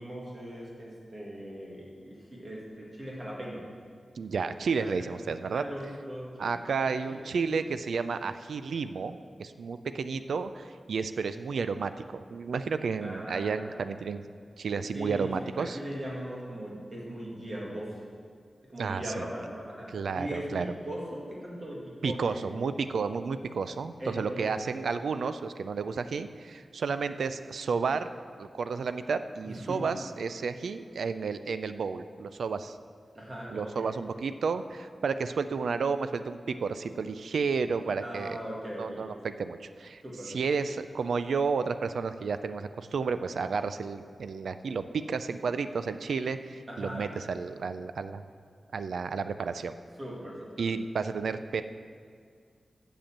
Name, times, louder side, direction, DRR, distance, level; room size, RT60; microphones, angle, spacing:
voice 1, 0.0-3.6 4.8-6.5 6.8-7.2 13.0-13.9 14.9-15.3 15.6-18.0 18.7-19.9 20.1-22.5 24.0-24.6 29.4-29.9 33.1-33.9 38.0-39.0 40.0-40.4 46.7-47.1 50.0-50.5, equal, 30° right, -4 dB, 2.0 m, -39 dB
voice 2, 4.2-5.6 6.4-14.2 14.6-15.8 18.8-19.2 19.9-20.7 22.0-28.1 28.4-32.8 33.5-38.4 38.8-48.2 48.7-49.7 50.6-51.6, right 5 dB, 85° right, 11 dB, 0.4 m, -32 dB
7.8 x 6.8 x 7.3 m, 2.1 s
wide cardioid pair, 160°, 0 cm